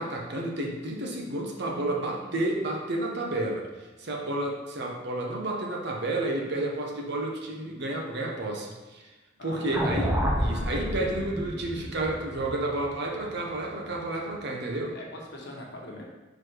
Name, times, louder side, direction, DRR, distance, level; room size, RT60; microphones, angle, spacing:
voice 1, 0.0-3.7 4.0-9.0 9.4-15.0, right 2 dB, 60° right, 0 dB, 1.0 m, -31 dB
voice 2, 1.6-2.4 9.4-10.2 14.9-16.1, left 1 dB, 60° left, -1 dB, 1.2 m, -42 dB
sound 1, 9.7-14.0, equal, 5° right, 0.7 m, -30 dB
4.9 x 4.1 x 4.6 m, 1.1 s
head